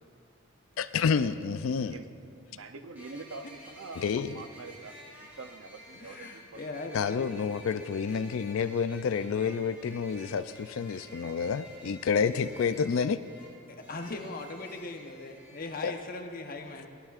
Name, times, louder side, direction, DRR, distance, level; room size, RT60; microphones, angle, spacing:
voice 1, 0.8-2.0 4.0-4.3 6.9-13.2 15.8-15.9, left 6 dB, 65° left, 12 dB, 0.4 m, -29 dB
voice 2, 2.5-6.7, right 3 dB, 65° right, 8 dB, 0.6 m, -45 dB
sound 1, 3.0-15.7, equal, 10° right, 2.3 m, -51 dB
voice 3, 5.9-7.3 13.7-16.9, left 2 dB, 40° left, 3 dB, 0.9 m, -39 dB
17.5 x 11.5 x 2.5 m, 2.2 s
head